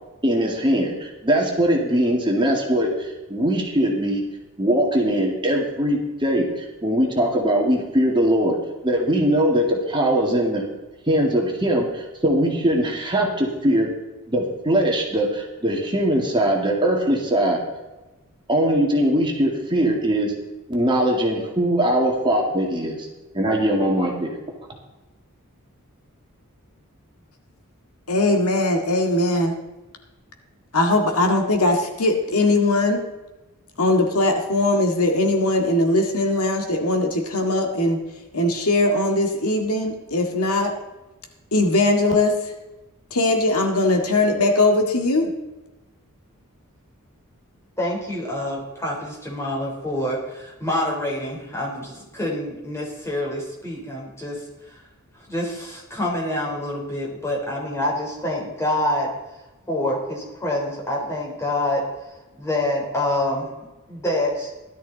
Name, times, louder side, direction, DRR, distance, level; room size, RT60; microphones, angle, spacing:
voice 1, 0.2-4.2 4.6-8.6 8.8-10.6 11.1-13.9 14.3-17.6 18.5-20.3 20.7-23.1 23.3-24.3, right 1 dB, 20° right, 0 dB, 2.2 m, -21 dB
voice 2, 28.1-29.6 30.7-33.1 33.8-38.0 38.3-40.7 41.5-42.5 43.1-45.3, left 2 dB, 75° left, 3 dB, 1.9 m, -20 dB
voice 3, 47.8-54.4 55.3-59.1 59.7-61.8 62.4-63.5 63.9-64.5, left 1 dB, 15° left, -3 dB, 4.0 m, -26 dB
16.5 x 12.5 x 4.1 m, 1.1 s
head